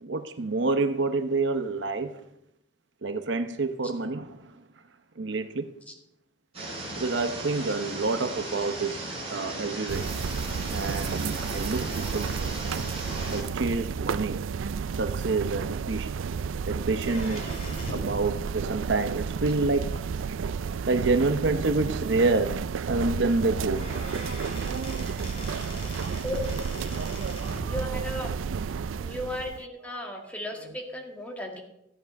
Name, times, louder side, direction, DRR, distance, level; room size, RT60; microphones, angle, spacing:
voice 1, 0.0-2.1 3.0-4.5 5.2-5.7 7.0-9.0 9.3-10.1 10.7-12.3 13.3-14.4 15.0-16.1 16.7-17.6 17.9-20.0 20.9-23.9 25.1-25.2 30.1-30.2, right 3 dB, 65° right, 0.8 m, -28 dB
sound 1, 6.5-13.4, right 1 dB, 30° right, 5.1 m, -36 dB
sound 2, 9.9-29.6, right 6 dB, 90° right, 0.4 m, -32 dB
sound 3, 17.0-18.2 19.9-20.0 21.0-21.1 21.5-21.6 21.9-22.0 23.3-23.4 23.7-27.7, left 2 dB, 35° left, 3.7 m, -41 dB
voice 2, 26.2-26.5 27.7-28.3 29.0-31.6, left 1 dB, 10° left, 2.0 m, -35 dB
14.0 x 9.7 x 5.3 m
head